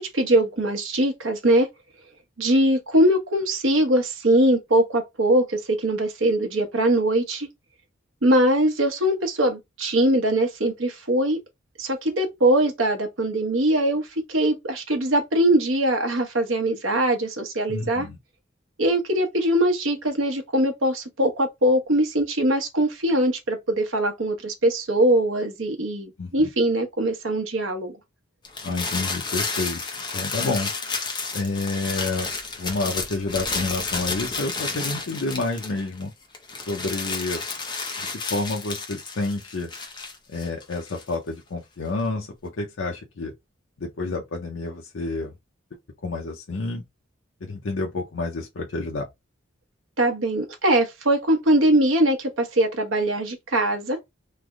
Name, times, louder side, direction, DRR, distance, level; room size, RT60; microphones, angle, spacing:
voice 1, 0.0-1.7 2.4-7.5 8.2-11.4 11.8-18.1 18.8-28.0 50.0-54.0, right 1 dB, 75° right, 0.8 m, -22 dB
voice 2, 17.7-18.2 26.2-26.5 28.6-29.8 30.1-30.7 31.3-32.3 32.6-36.1 36.7-37.4 38.0-39.7 40.3-42.3 42.6-43.3 43.8-45.3 46.0-46.8 47.4-49.1, left 3 dB, 75° left, 0.6 m, -29 dB
sound 1, 28.4-36.0 36.3-41.1, left 4 dB, 20° left, 0.6 m, -31 dB
3.3 x 2.1 x 3.5 m
head